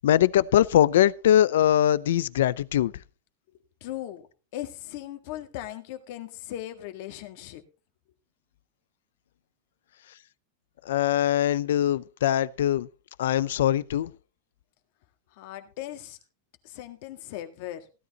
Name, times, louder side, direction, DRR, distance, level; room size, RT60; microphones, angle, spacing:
voice 1, 0.0-2.9 10.9-12.9 13.2-14.1, left 11 dB, 85° left, 0.6 m, -22 dB
voice 2, 3.8-4.3 4.5-7.6 15.4-16.2 16.6-17.9, left 13 dB, 50° left, 1.7 m, -38 dB
16.0 x 12.0 x 2.9 m
supercardioid pair, 165°, 0 cm